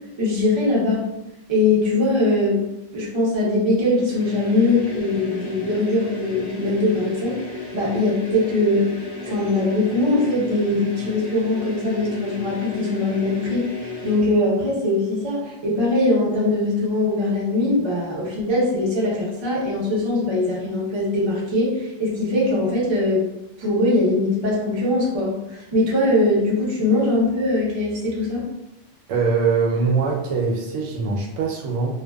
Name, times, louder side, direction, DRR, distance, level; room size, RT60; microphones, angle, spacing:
voice 1, 0.2-1.1 1.5-2.6 2.9-8.9 9.2-23.3 23.6-28.4, left 2 dB, 30° right, -5 dB, 0.5 m, -21 dB
sound 1, 4.0-14.4, left 3 dB, 70° left, 0.8 m, -34 dB
voice 2, 29.1-32.0, right 4 dB, 85° right, 0 dB, 0.9 m, -22 dB
2.5 x 2.2 x 2.2 m, 0.92 s
omnidirectional pair, 1.2 m